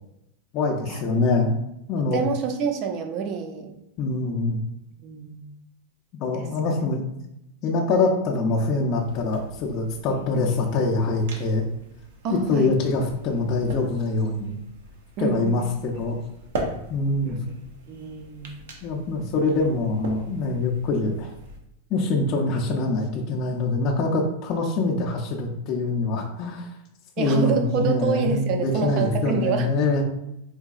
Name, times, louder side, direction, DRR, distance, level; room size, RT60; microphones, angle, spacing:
voice 1, 0.5-1.6 1.9-2.2 4.0-4.6 6.2-7.0 7.6-11.6 12.3-14.6 15.2-16.2 16.9-17.4 18.8-21.3 21.9-26.7 27.2-30.0, left 3 dB, 35° left, -2 dB, 0.4 m, -24 dB
voice 2, 2.0-3.7 5.0-5.5 6.3-6.7 12.2-12.7 15.2-15.6 17.2-17.4 17.9-18.5 19.5-19.8 27.2-29.7, right 5 dB, 40° right, 5 dB, 0.5 m, -27 dB
sound 1, 9.0-21.6, right 2 dB, 80° right, 0.7 m, -40 dB
3.9 x 2.6 x 2.4 m, 0.84 s
supercardioid pair, 160°, 0 cm